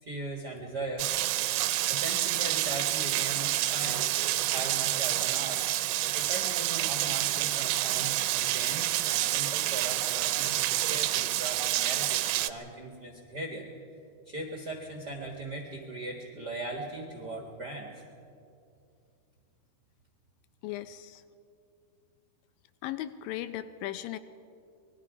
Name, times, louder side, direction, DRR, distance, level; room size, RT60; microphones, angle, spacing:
voice 1, 0.0-1.1 1.5-1.6 1.9-5.7 6.1-13.7 14.2-18.0, right 2 dB, 45° right, 0 dB, 1.3 m, -39 dB
Rain, 1.0-12.5, right 15 dB, 85° right, 2.7 m, -28 dB
voice 2, 20.6-21.2 22.8-24.2, left 13 dB, 80° left, 12 dB, 2.1 m, -37 dB
26.5 x 21.0 x 4.9 m, 2.5 s
omnidirectional pair, 4.6 m